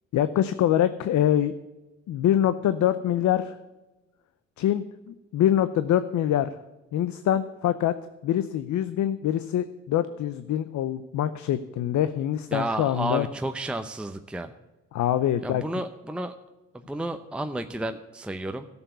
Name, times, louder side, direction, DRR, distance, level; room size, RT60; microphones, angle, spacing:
voice 1, 0.1-1.6 2.1-3.5 4.6-6.5 6.9-7.9 8.2-13.3 14.9-15.6, left 11 dB, 70° left, 12 dB, 0.7 m, -24 dB
voice 2, 12.5-14.5 15.4-16.3 16.7-18.7, right 1 dB, 5° right, 7 dB, 0.7 m, -31 dB
12.5 x 7.1 x 8.0 m, 1.1 s
cardioid pair, 90°, 30 cm